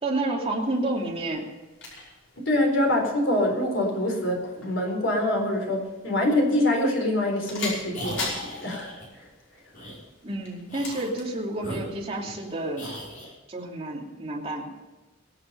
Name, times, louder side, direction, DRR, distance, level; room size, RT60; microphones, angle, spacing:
voice 1, 0.0-1.5 10.2-12.9 13.5-14.7, right 2 dB, 30° right, -1 dB, 2.9 m, -30 dB
sound 1, 0.6-13.1, left 3 dB, 85° left, 5.5 m, -42 dB
voice 2, 2.4-9.3, left 1 dB, 70° left, 2 dB, 4.3 m, -25 dB
sound 2, 7.9-9.1 9.7-10.0 10.7-11.2 11.6-12.4 12.8-13.3, left 1 dB, 45° left, 5.0 m, -38 dB
23.0 x 8.0 x 5.5 m, 1.2 s
head